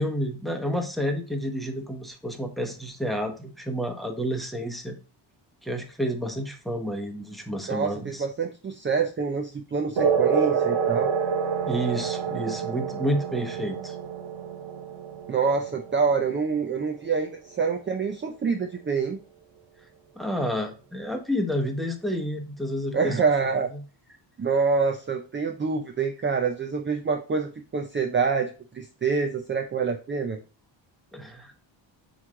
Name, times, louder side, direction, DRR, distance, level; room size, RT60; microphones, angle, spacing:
voice 1, 0.0-5.0 5.6-8.2 11.7-13.9 20.2-23.2 31.1-31.5, equal, ahead, 4 dB, 1.0 m, -30 dB
voice 2, 7.7-11.1 15.3-19.2 22.9-23.7 24.4-30.4, right 5 dB, 25° right, 4 dB, 0.5 m, -26 dB
sound 1, 10.0-17.0, right 6 dB, 65° right, 1.2 m, -28 dB
7.9 x 3.2 x 3.7 m, 0.35 s
wide cardioid pair, 145°, 46 cm